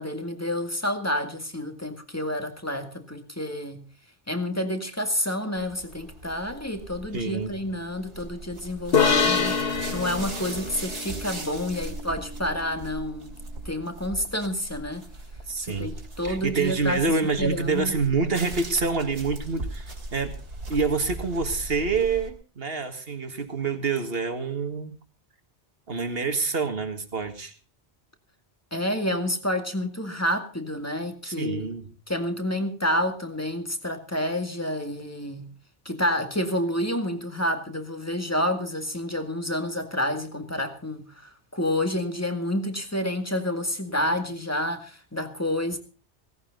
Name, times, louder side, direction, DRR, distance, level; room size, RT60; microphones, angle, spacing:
voice 1, 0.0-3.8 4.3-9.6 9.9-13.3 13.7-15.1 15.7-17.0 17.4-17.9 28.7-31.7 32.1-35.5 35.9-45.8, left 1 dB, 15° left, 2.0 m, -29 dB
sound 1, 5.6-22.3, right 2 dB, 80° right, 3.2 m, -39 dB
voice 2, 7.1-7.6 15.5-15.9 16.2-20.3 20.7-25.0 25.9-27.5 31.2-31.9, right 4 dB, 60° right, 2.1 m, -27 dB
sound 2, 8.9-12.4, left 5 dB, 60° left, 1.5 m, -26 dB
17.5 x 15.5 x 4.0 m
omnidirectional pair, 1.2 m